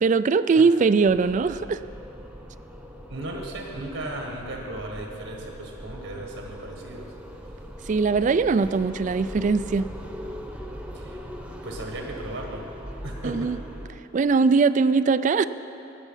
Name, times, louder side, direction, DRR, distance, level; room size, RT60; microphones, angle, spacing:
voice 1, 0.0-1.8 7.9-9.9 13.2-13.6 14.1-15.4, right 4 dB, 40° right, 14 dB, 0.3 m, -21 dB
sound 1, 1.0-13.9, equal, 5° right, 0.9 m, -40 dB
voice 2, 3.1-7.1 10.9-11.2 11.5-12.7 13.0-13.5, right 1 dB, 75° right, 1 dB, 1.5 m, -36 dB
19.0 x 7.2 x 5.6 m, 2.9 s
head